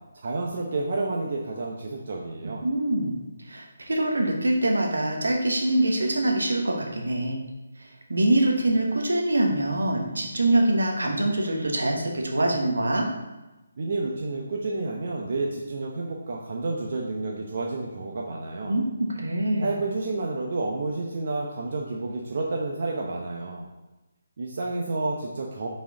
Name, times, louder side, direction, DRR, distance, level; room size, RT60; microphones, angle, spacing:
voice 1, 0.1-2.6 13.8-18.8 19.6-23.7 24.4-25.7, right 3 dB, 50° right, -1 dB, 0.8 m, -30 dB
voice 2, 2.4-7.4 7.8-13.0 18.6-19.7, right 1 dB, 75° right, 1 dB, 1.3 m, -24 dB
5.7 x 4.4 x 3.8 m, 1.0 s
figure-of-eight pair, 150°, 0 cm